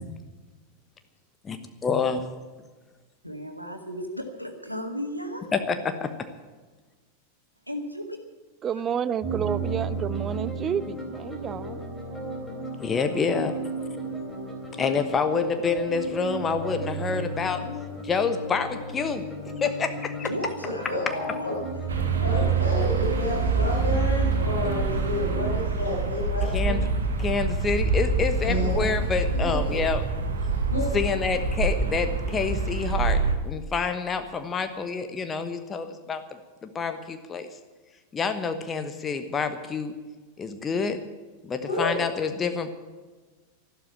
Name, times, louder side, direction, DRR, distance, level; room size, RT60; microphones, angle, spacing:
voice 1, 1.8-2.3 5.5-6.1 12.8-13.5 14.8-17.6 18.0-20.3 26.4-26.9 27.2-30.0 30.9-36.2 36.6-37.5 38.1-39.9 40.4-41.0 41.4-42.7, left 5 dB, 20° left, 1.2 m, -27 dB
voice 2, 3.2-5.5 7.7-8.2 20.2-21.5 23.3-23.5, equal, 90° right, 2.0 m, -35 dB
voice 3, 8.6-11.8, right 8 dB, 25° right, 0.6 m, -30 dB
sound 1, 9.2-25.7, right 5 dB, 5° left, 3.6 m, -32 dB
voice 4, 20.6-21.5 22.2-26.9 28.4-29.1 29.3-29.8 30.5-30.9 41.7-42.0, left 1 dB, 75° left, 6.2 m, -30 dB
sound 2, 21.9-33.3, right 3 dB, 65° right, 1.9 m, -26 dB
12.5 x 12.5 x 8.4 m
figure-of-eight pair, 90°, 0 cm